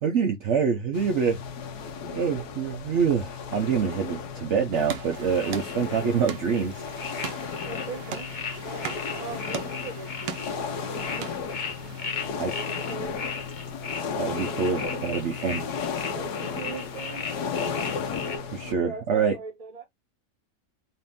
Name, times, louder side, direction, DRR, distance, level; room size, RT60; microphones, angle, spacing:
voice 1, 0.0-1.4 2.1-6.8 12.4-12.5 14.2-15.6 18.5-19.4, right 6 dB, 60° right, 0.7 m, -26 dB
sound 1, 0.9-18.7, left 5 dB, 65° left, 1.3 m, -34 dB
sound 2, 4.7-12.1, right 8 dB, 85° right, 1.4 m, -40 dB
sound 3, 5.1-18.4, left 5 dB, 50° left, 0.6 m, -38 dB
voice 2, 7.6-8.3 8.5-11.3 11.8-13.2 14.8-15.1 15.4-15.5 16.2-17.3 18.6-19.9, right 4 dB, 25° right, 1.2 m, -41 dB
4.2 x 2.6 x 3.4 m
omnidirectional pair, 1.9 m